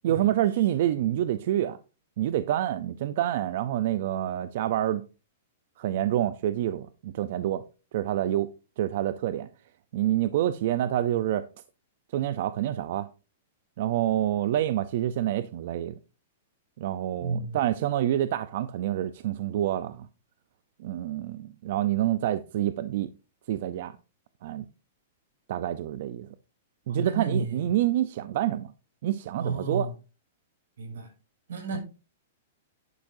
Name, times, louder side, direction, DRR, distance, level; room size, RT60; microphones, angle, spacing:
voice 1, 0.0-1.8 2.2-5.0 5.8-7.6 7.9-8.5 8.8-9.5 9.9-11.5 12.1-13.1 13.8-15.9 16.8-20.1 20.8-23.1 23.5-23.9 24.4-24.7 25.5-26.3 26.9-28.7 29.0-29.9, right 12 dB, 55° right, 0.6 m, -27 dB
voice 2, 17.2-17.7 26.9-27.7 29.4-29.9 30.8-31.1 31.5-31.8, right 4 dB, 85° right, 6.1 m, -32 dB
11.0 x 9.6 x 2.7 m
hypercardioid pair, 155°, 0 cm